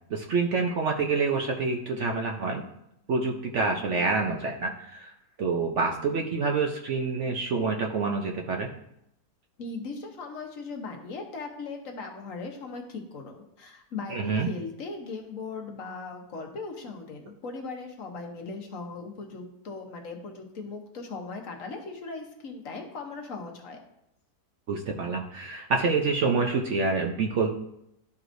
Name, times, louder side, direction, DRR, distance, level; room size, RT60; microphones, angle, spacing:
voice 1, 0.1-2.6 3.1-5.1 5.4-8.7 14.1-14.5 24.7-27.6, right 4 dB, 60° right, 2 dB, 0.8 m, -27 dB
voice 2, 9.6-23.8, left 4 dB, 60° left, 3 dB, 1.3 m, -38 dB
12.0 x 4.7 x 2.6 m, 0.80 s
omnidirectional pair, 1.7 m